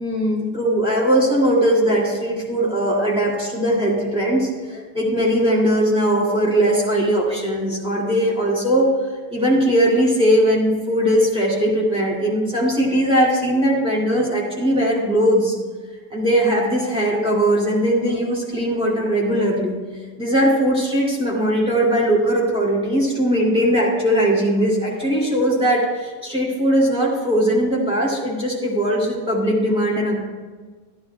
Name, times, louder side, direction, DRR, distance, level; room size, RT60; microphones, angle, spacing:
voice 1, 0.0-15.5 16.1-19.7 20.2-30.1, equal, 5° right, -5 dB, 2.4 m, -19 dB
13.5 x 10.5 x 2.3 m, 1.4 s
omnidirectional pair, 1.8 m